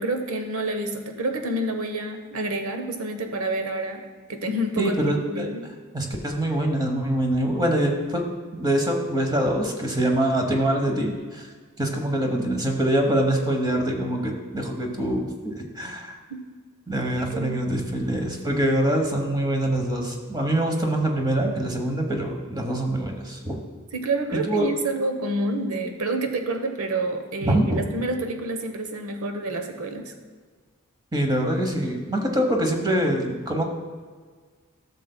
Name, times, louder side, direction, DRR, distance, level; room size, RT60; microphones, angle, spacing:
voice 1, 0.0-5.0 5.3-5.6 16.3-16.4 17.1-17.6 23.9-30.1, right 2 dB, 85° right, 5 dB, 0.9 m, -28 dB
voice 2, 4.8-5.5 5.9-8.2 8.5-11.5 11.8-16.1 16.9-23.6 24.5-24.7 27.4-27.8 31.1-33.6, right 1 dB, 20° right, 3 dB, 1.0 m, -24 dB
13.0 x 6.7 x 2.2 m, 1.5 s
head